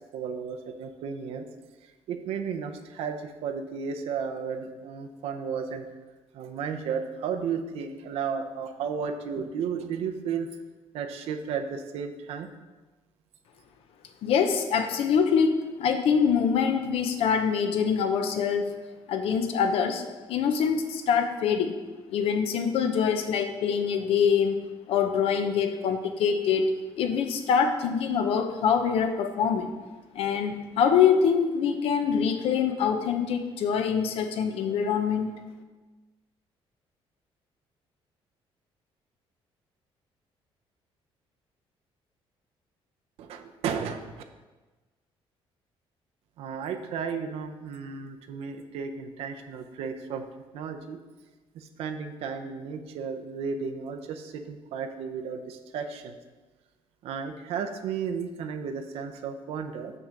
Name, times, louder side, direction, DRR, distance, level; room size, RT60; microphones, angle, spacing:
voice 1, 0.1-1.5 1.8-5.9 6.3-10.5 10.9-12.5 43.2-44.2 46.4-50.2 50.5-51.0 51.5-56.1 57.0-59.9, right 6 dB, 75° right, 5 dB, 0.7 m, -33 dB
voice 2, 14.2-18.7 19.1-20.0 20.3-21.8 22.1-26.7 27.0-29.7 30.1-35.3, left 7 dB, 70° left, 7 dB, 0.8 m, -24 dB
6.7 x 6.0 x 5.1 m, 1.2 s
cardioid pair, 165°, 10 cm